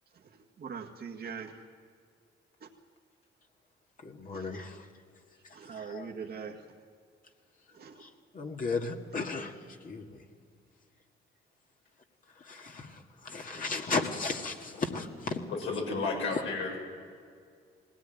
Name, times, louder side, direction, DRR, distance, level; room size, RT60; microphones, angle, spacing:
voice 1, 0.6-1.6 4.3-4.5 5.5-6.6 7.7-8.0, right 6 dB, 50° right, 0 dB, 1.8 m, -41 dB
voice 2, 4.0-4.9 5.4-6.1 8.0-10.3 12.4-15.4 16.3-16.4, left 4 dB, 45° left, 2 dB, 2.0 m, -35 dB
voice 3, 15.6-16.8, left 3 dB, 80° left, 0 dB, 6.4 m, -32 dB
19.5 x 17.5 x 9.2 m, 2.2 s
cardioid pair, 90°, 20 cm